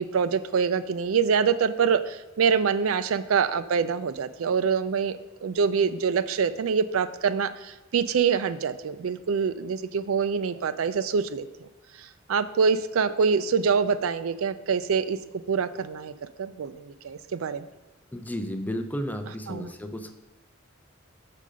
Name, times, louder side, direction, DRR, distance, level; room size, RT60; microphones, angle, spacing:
voice 1, 0.0-11.7 12.3-15.2 15.5-16.1 16.4-17.7 19.5-19.7, right 6 dB, 85° right, 12 dB, 0.4 m, -25 dB
voice 2, 18.1-20.1, equal, 10° left, 6 dB, 0.5 m, -33 dB
6.6 x 5.3 x 4.9 m, 1.1 s
head